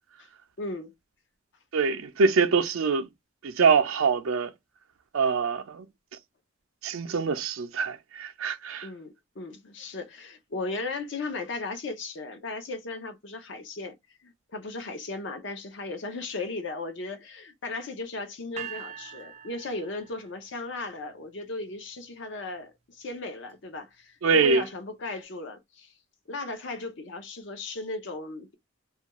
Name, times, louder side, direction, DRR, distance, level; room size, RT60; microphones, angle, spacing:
voice 1, 0.6-0.9 8.8-14.0 14.2-25.9 26.3-28.5, left 2 dB, 60° left, 0.6 m, -36 dB
voice 2, 1.7-3.1 3.4-4.5 5.1-5.9 6.8-8.9 24.2-24.6, right 5 dB, 90° right, 0.5 m, -24 dB
sound 1, 18.6-20.7, right 8 dB, 35° right, 0.4 m, -42 dB
2.4 x 2.2 x 2.8 m
head